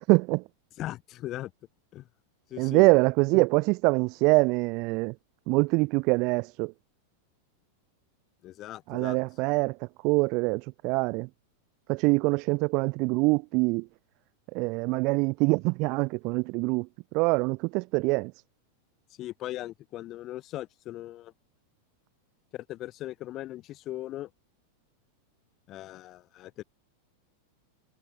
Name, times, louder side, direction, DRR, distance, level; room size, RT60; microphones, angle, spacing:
voice 1, 0.1-0.4 2.6-5.1 5.5-6.7 8.9-9.8 10.0-11.3 11.9-13.9 14.5-16.9 17.1-18.3, right 27 dB, 40° right, 0.3 m, -24 dB
voice 2, 0.8-1.5 1.9-2.1 2.5-2.9 8.4-9.2 19.2-21.3 22.5-24.3 25.7-26.6, left 15 dB, 35° left, 1.9 m, -39 dB
figure-of-eight pair, 90°, 0 cm